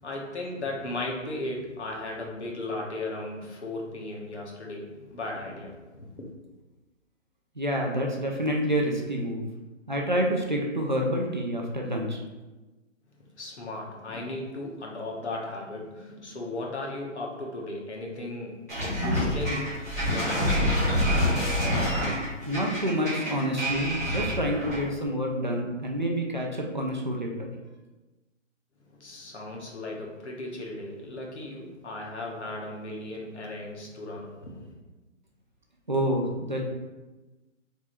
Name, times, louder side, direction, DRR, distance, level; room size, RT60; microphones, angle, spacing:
voice 1, 0.0-6.3 13.4-19.8 20.1-21.4 28.9-34.7, left 2 dB, 60° left, -1 dB, 1.1 m, -36 dB
voice 2, 7.6-9.5 9.9-12.2 22.4-27.5 35.9-36.6, equal, 40° right, 0 dB, 0.4 m, -28 dB
sound 1, 18.7-24.9, equal, 15° left, 0.8 m, -27 dB
3.6 x 3.0 x 4.3 m, 1.2 s
hypercardioid pair, 180°, 39 cm